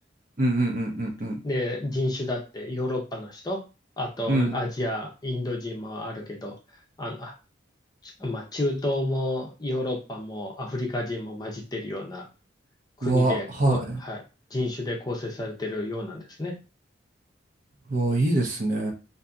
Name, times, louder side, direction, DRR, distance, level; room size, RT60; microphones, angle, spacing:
voice 1, 0.4-1.4 4.3-4.6 13.0-14.0 17.9-18.9, right 2 dB, 45° right, 2 dB, 0.7 m, -24 dB
voice 2, 1.4-3.6 4.0-6.6 7.0-7.3 8.0-12.3 13.0-14.2 14.5-16.5, left 1 dB, 20° left, 0 dB, 0.6 m, -30 dB
2.6 x 2.6 x 2.3 m, 0.30 s
head